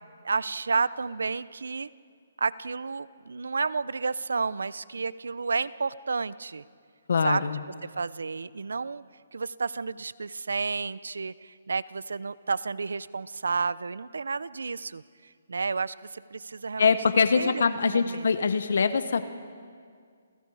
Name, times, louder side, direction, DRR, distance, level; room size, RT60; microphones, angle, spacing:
voice 1, 0.2-1.9 2.4-6.6 7.2-7.5 7.8-9.0 9.3-15.0 15.5-16.9 17.3-18.3, right 4 dB, 85° right, 19 dB, 0.7 m, -31 dB
voice 2, 7.1-7.6 16.8-19.2, left 5 dB, 70° left, 11 dB, 1.2 m, -23 dB
29.5 x 28.5 x 4.9 m, 2.1 s
hypercardioid pair, 160°, 0 cm